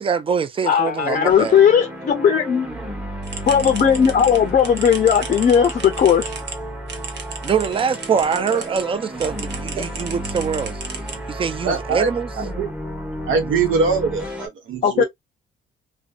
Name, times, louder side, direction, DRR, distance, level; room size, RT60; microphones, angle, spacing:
voice 1, 0.0-1.6 7.4-10.8 11.3-12.3, right 6 dB, 25° right, 0.4 m, -23 dB
voice 2, 0.6-2.7 3.5-6.3 14.8-15.0, left 8 dB, 40° left, 0.5 m, -17 dB
sound 1, 1.3-14.5, right 1 dB, 5° right, 0.9 m, -32 dB
sound 2, 3.2-8.8 9.2-11.6, right 5 dB, 60° right, 0.8 m, -35 dB
voice 3, 8.3-8.6 11.6-12.1 12.4-12.7 13.3-15.0, right 5 dB, 85° right, 1.0 m, -23 dB
2.6 x 2.1 x 2.3 m
cardioid pair, 90°, 20 cm